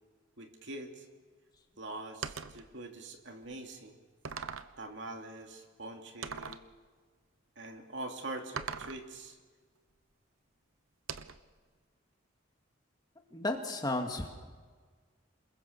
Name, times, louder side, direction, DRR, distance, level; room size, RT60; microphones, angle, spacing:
voice 1, 0.4-1.0 1.8-4.0 4.8-6.6 7.6-9.4, right 2 dB, 60° right, 3 dB, 2.8 m, -44 dB
sound 1, 2.2-2.7 3.4-3.5 4.3-4.8 6.2-6.7 8.6-9.1 11.1-11.5, right 6 dB, 90° right, 1.0 m, -40 dB
voice 2, 13.3-14.3, left 2 dB, 20° left, 3 dB, 2.1 m, -33 dB
28.5 x 21.5 x 6.9 m, 1.5 s
head